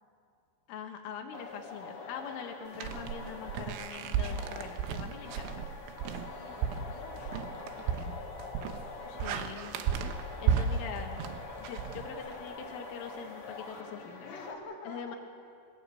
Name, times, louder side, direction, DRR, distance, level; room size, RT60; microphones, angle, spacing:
voice 1, 0.7-5.5 9.1-9.8 10.4-11.2 11.6-14.3 14.9-15.2, left 7 dB, 80° left, 3 dB, 4.0 m, -43 dB
sound 1, 1.3-14.5, left 4 dB, 50° left, 1.8 m, -45 dB
sound 2, 2.7-12.6, right 7 dB, 85° right, 3.6 m, -34 dB
voice 2, 6.3-8.2 9.0-9.8 14.2-15.2, left 3 dB, 25° left, -3 dB, 3.6 m, -48 dB
Wind instrument woodwind instrument, 7.3-12.1, left 5 dB, 45° right, 8.9 m, -60 dB
26.5 x 17.0 x 8.5 m, 2.4 s
omnidirectional pair, 5.6 m